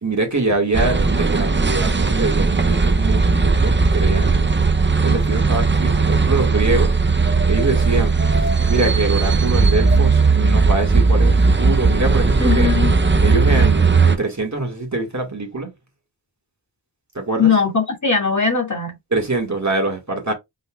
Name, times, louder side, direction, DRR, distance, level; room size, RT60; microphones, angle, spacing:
voice 1, 0.0-4.4 5.0-7.0 7.5-8.2 8.7-12.7 13.2-15.7 17.2-17.5 19.1-20.3, right 2 dB, 45° right, 1.8 m, -24 dB
sound 1, 0.7-14.2, right 4 dB, 30° right, 0.7 m, -17 dB
voice 2, 12.4-12.9 17.4-19.0, left 5 dB, 45° left, 2.0 m, -19 dB
5.5 x 4.0 x 2.3 m
wide cardioid pair, 55°, 40 cm